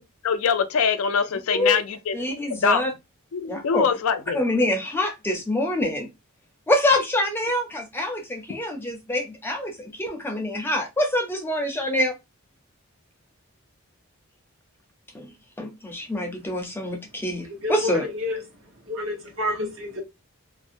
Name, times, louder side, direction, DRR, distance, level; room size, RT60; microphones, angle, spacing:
voice 1, 0.2-2.2 2.5-2.8 3.3-4.4, left 6 dB, 80° left, 0.4 m, -23 dB
voice 2, 1.5-1.8 2.1-2.9 3.5-3.9 4.3-6.1 6.7-12.2 15.1-15.3 15.6-18.0, left 1 dB, 10° left, 0.5 m, -25 dB
voice 3, 17.5-18.4 18.8-20.0, left 2 dB, 70° right, 1.0 m, -29 dB
2.6 x 2.1 x 2.5 m
head